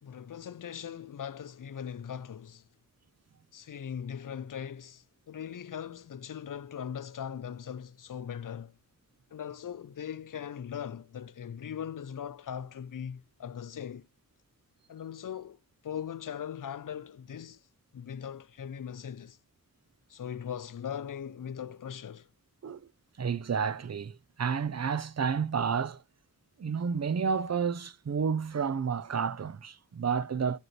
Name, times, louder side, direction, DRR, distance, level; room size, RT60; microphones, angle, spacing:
voice 1, 0.0-2.7 3.5-8.7 9.3-14.1 14.9-15.6 15.8-17.6 17.9-19.4 20.1-22.3, left 8 dB, 65° left, 0.5 m, -40 dB
voice 2, 23.2-26.0 26.6-30.6, right 6 dB, 50° right, 0.5 m, -30 dB
12.5 x 5.0 x 3.0 m
wide cardioid pair, 60°, 35 cm